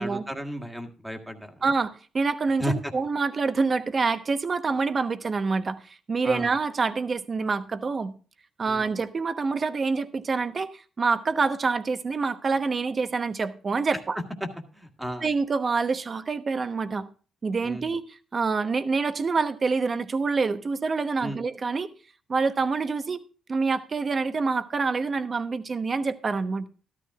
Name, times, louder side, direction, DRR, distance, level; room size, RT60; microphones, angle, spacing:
voice 1, 0.0-1.7 2.6-2.9 6.2-6.5 8.6-8.9 14.7-15.3 17.6-17.9 21.2-21.4, equal, 5° right, 1.7 m, -33 dB
voice 2, 1.6-8.1 8.6-14.2 15.2-17.1 17.4-18.0 18.3-21.9 22.3-26.7, right 4 dB, 35° right, 1.0 m, -26 dB
13.0 x 12.5 x 2.4 m
cardioid pair, 90°, 0 cm